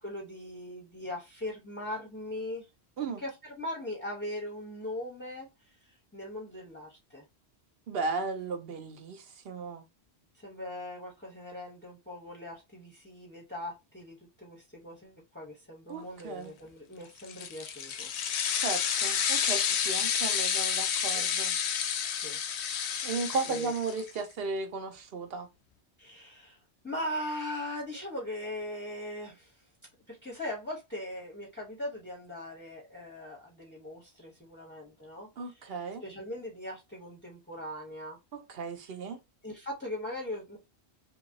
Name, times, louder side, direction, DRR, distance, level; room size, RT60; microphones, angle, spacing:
voice 1, 0.0-2.7 3.2-7.2 10.3-18.1 21.1-21.2 22.1-22.4 23.4-23.7 26.0-29.7 30.1-35.8 36.0-38.2 39.4-40.6, left 1 dB, 10° left, 0.6 m, -40 dB
voice 2, 7.9-9.8 15.9-16.5 18.5-21.5 23.0-25.5 35.4-36.0 38.3-39.2, right 4 dB, 65° right, 0.8 m, -35 dB
sound 1, 17.2-24.2, left 8 dB, 75° left, 0.8 m, -30 dB
2.8 x 2.6 x 2.5 m
omnidirectional pair, 1.1 m